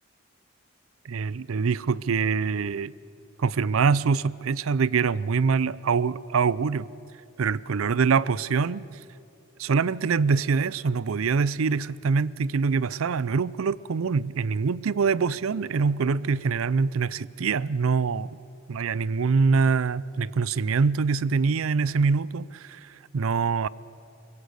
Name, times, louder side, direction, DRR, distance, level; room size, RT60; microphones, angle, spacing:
voice 1, 1.0-2.9 3.4-6.9 7.4-8.9 9.6-18.4 18.7-23.7, right 5 dB, 85° right, 21 dB, 0.5 m, -24 dB
23.5 x 16.5 x 8.0 m, 2.7 s
head